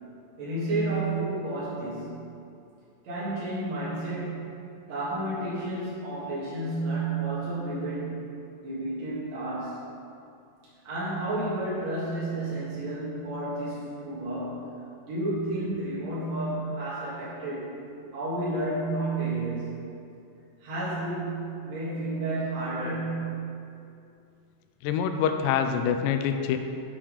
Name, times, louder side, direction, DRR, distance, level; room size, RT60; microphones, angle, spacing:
voice 1, 0.4-2.2 3.0-4.4 4.9-8.2 8.6-9.9 10.8-17.7 18.1-19.8 20.6-23.3, right 2 dB, 55° right, -10 dB, 2.7 m, -31 dB
voice 2, 24.8-26.6, left 8 dB, 80° left, 7 dB, 2.0 m, -25 dB
7.3 x 5.9 x 4.9 m, 2.5 s
omnidirectional pair, 4.1 m